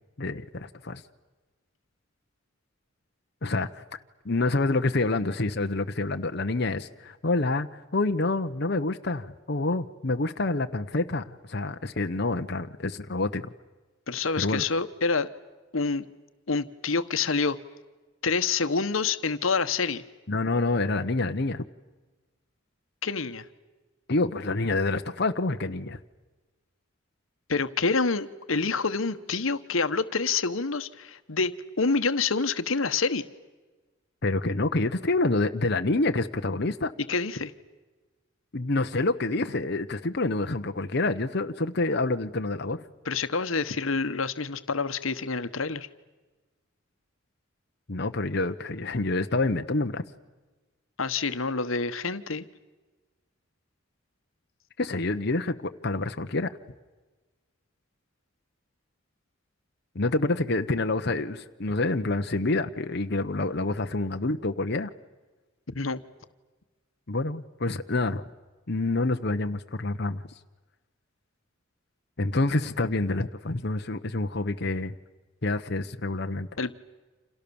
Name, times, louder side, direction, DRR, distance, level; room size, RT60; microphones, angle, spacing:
voice 1, 0.2-1.0 3.4-3.8 4.2-13.5 14.4-14.6 20.3-21.6 24.1-26.0 34.2-36.9 38.5-42.8 47.9-50.1 54.8-56.6 59.9-64.9 67.1-68.2 68.7-70.2 72.2-74.9 75.4-76.5, left 2 dB, 55° left, 6 dB, 1.0 m, -27 dB
voice 2, 14.1-15.3 15.7-16.1 16.5-17.6 18.2-20.0 23.0-23.5 27.5-33.2 37.1-37.5 43.1-45.9 51.0-52.4 65.7-66.0 76.6-76.7, left 4 dB, 85° left, 11 dB, 1.2 m, -27 dB
29.5 x 27.5 x 7.1 m, 1.2 s
head